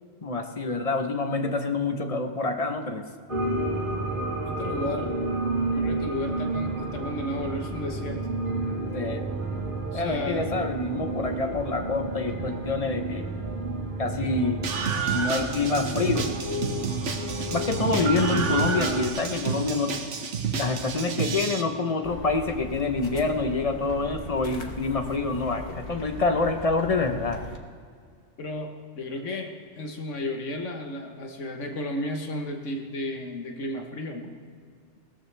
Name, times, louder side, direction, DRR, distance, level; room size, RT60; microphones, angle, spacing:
voice 1, 0.2-3.0 8.9-9.3 9.9-13.3 14.0-14.6 15.1-16.3 17.5-19.9 20.5-27.4, left 3 dB, 35° left, 6 dB, 0.8 m, -27 dB
sound 1, 3.3-19.1, right 2 dB, 45° right, 2.5 m, -31 dB
voice 2, 4.4-5.2 5.7-8.2 9.9-10.5 17.8-18.2 28.4-28.7 28.9-34.3, left 1 dB, 90° left, 3 dB, 1.5 m, -33 dB
Screaming, 14.6-21.6, right 5 dB, 80° right, 1.3 m, -30 dB
sound 2, 22.0-27.6, left 1 dB, 55° left, 1.3 m, -39 dB
18.5 x 13.5 x 3.3 m, 2.1 s
omnidirectional pair, 1.2 m